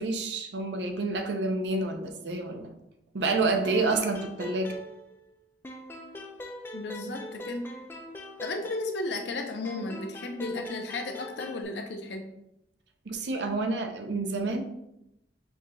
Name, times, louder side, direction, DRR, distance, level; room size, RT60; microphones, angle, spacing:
voice 1, 0.0-2.7 3.1-4.8 13.1-14.6, right 3 dB, 80° right, 5 dB, 0.6 m, -28 dB
sound 1, 3.6-5.3 5.6-9.3 9.6-11.6, left 1 dB, 15° left, 0.3 m, -42 dB
voice 2, 6.7-7.7 8.4-12.3, left 2 dB, 75° left, 4 dB, 0.6 m, -34 dB
5.7 x 2.8 x 2.6 m, 0.85 s
head